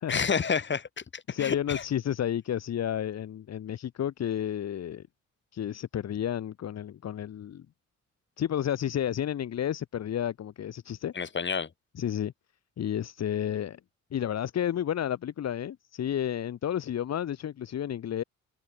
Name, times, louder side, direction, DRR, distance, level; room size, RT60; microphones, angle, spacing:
voice 1, 0.1-1.8 11.2-11.7, left 6 dB, 40° left, 3.5 m, -29 dB
voice 2, 1.3-5.0 5.5-7.7 8.4-11.1 12.0-12.3 12.8-13.8 14.1-18.2, left 10 dB, 60° left, 2.0 m, -31 dB
open air
cardioid pair, 90°, 30 cm